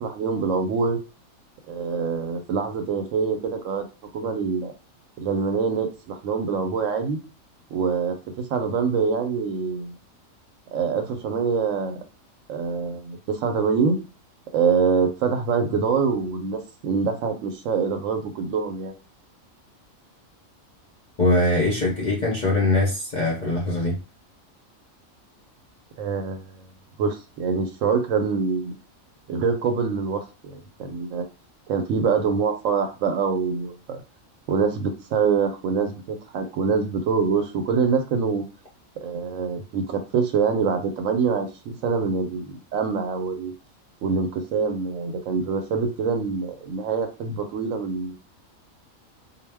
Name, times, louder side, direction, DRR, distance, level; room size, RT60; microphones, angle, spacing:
voice 1, 0.0-1.0 1.7-3.8 4.1-4.7 5.2-7.2 7.7-10.0 10.7-12.0 12.5-14.0 14.5-18.9 26.0-26.6 27.0-28.7 29.3-31.3 31.7-34.0 34.5-38.4 39.0-43.5 44.0-48.2, right 5 dB, 70° right, 0.9 m, -25 dB
voice 2, 21.2-24.0, left 2 dB, 50° left, 0.5 m, -22 dB
2.2 x 2.1 x 3.2 m
omnidirectional pair, 1.4 m